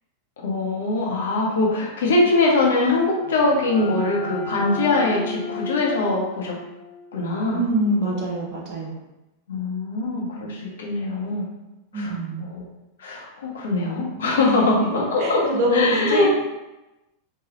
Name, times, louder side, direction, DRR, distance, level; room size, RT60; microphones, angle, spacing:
voice 1, 0.4-6.5 7.1-7.6 9.5-11.5 11.9-12.1 12.4-12.6 13.0-16.3, left 2 dB, 60° left, -2 dB, 0.7 m, -22 dB
sound 1, 2.9-8.4, left 4 dB, 20° right, 1.3 m, -36 dB
voice 2, 7.5-8.9 11.9-12.4 14.4-14.9 15.2-16.3, equal, 45° right, -2 dB, 0.8 m, -24 dB
3.0 x 2.2 x 2.8 m, 1.0 s
figure-of-eight pair, 90°, 0 cm